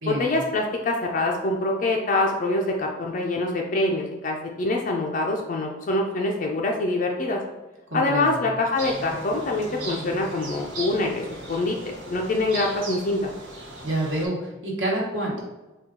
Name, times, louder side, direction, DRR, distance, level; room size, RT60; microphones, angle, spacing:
voice 1, 0.1-7.4 7.9-13.3, left 2 dB, 40° left, 0 dB, 0.4 m, -25 dB
voice 2, 7.9-8.4 13.8-15.4, right 1 dB, 65° right, -4 dB, 1.1 m, -27 dB
sound 1, 8.7-14.3, right 2 dB, 85° right, 1.4 m, -37 dB
4.4 x 2.3 x 3.6 m, 1.1 s
head